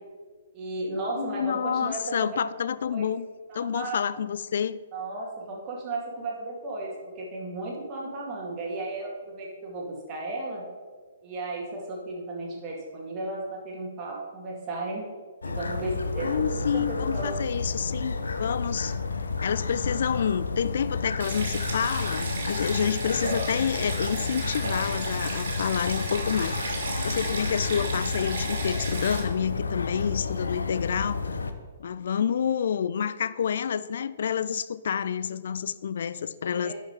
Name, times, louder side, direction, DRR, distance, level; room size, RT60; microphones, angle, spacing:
voice 1, 0.5-2.4 2.8-3.1 3.5-4.0 4.9-10.6 11.2-15.0 15.4-16.5 16.7-17.3 23.0-23.3 36.6-36.7, right 2 dB, 25° right, 2.2 m, -34 dB
voice 2, 1.2-3.3 3.5-4.8 16.2-19.0 19.4-26.8 27.0-31.4 31.8-36.7, left 8 dB, 55° left, 0.3 m, -28 dB
sound 1, 15.4-31.5, left 4 dB, 70° left, 0.7 m, -31 dB
Stream, 21.2-29.2, right 3 dB, 55° right, 2.2 m, -34 dB
10.0 x 5.1 x 5.0 m
figure-of-eight pair, 120°, 0 cm